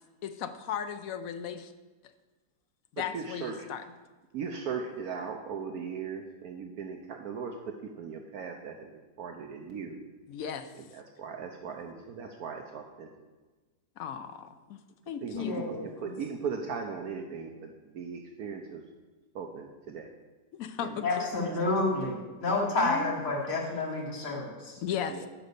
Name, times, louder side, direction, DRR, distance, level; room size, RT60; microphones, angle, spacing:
voice 1, 0.2-1.7 2.9-3.8 10.3-10.7 14.0-14.8 15.1-15.5 20.5-21.3 22.8-23.2 24.8-25.3, left 8 dB, 65° left, 9 dB, 1.0 m, -36 dB
voice 2, 3.0-3.7 4.3-8.9 9.2-10.0 10.8-13.1 15.2-18.8 19.3-20.1 20.8-21.0 21.5-21.7 22.5-22.6 25.1-25.2, right 6 dB, 70° right, 4 dB, 1.1 m, -38 dB
voice 3, 15.3-16.1 21.0-24.8, left 2 dB, 90° left, -4 dB, 2.4 m, -30 dB
8.8 x 5.3 x 6.8 m, 1.3 s
omnidirectional pair, 1.8 m